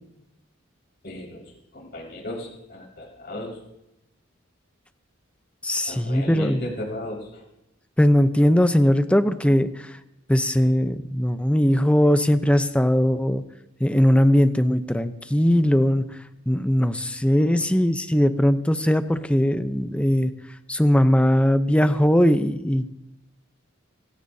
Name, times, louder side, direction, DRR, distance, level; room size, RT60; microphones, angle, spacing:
voice 1, 1.0-1.4 1.7-3.6 5.9-7.4, left 1 dB, 50° left, -4 dB, 5.1 m, -35 dB
voice 2, 5.6-6.7 8.0-10.0 10.3-13.4 13.8-16.0 16.5-20.3 20.7-22.9, equal, 5° left, 9 dB, 0.7 m, -20 dB
25.5 x 16.5 x 2.8 m, 0.88 s
head